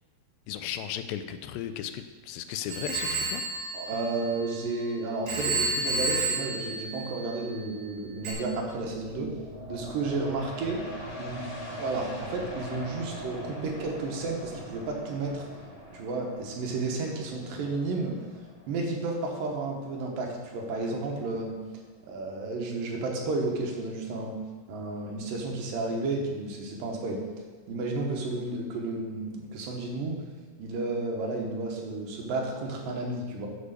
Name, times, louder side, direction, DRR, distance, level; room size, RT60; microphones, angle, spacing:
voice 1, 0.5-3.4, left 9 dB, 90° left, 10 dB, 2.4 m, -35 dB
Telephone, 2.7-4.8 5.3-7.6 8.2-8.3, right 3 dB, 55° right, 4.2 m, -31 dB
voice 2, 3.7-9.4 9.7-10.8 11.2-15.5 15.9-18.1 18.7-21.5 22.1-24.3 24.7-27.2 27.7-30.2 30.6-33.5, right 3 dB, 75° right, 0 dB, 2.8 m, -32 dB
sound 1, 8.1-21.3 21.7-21.8, equal, 55° left, 0.5 m, -42 dB
8.1 x 5.0 x 6.4 m, 1.4 s
omnidirectional pair, 4.1 m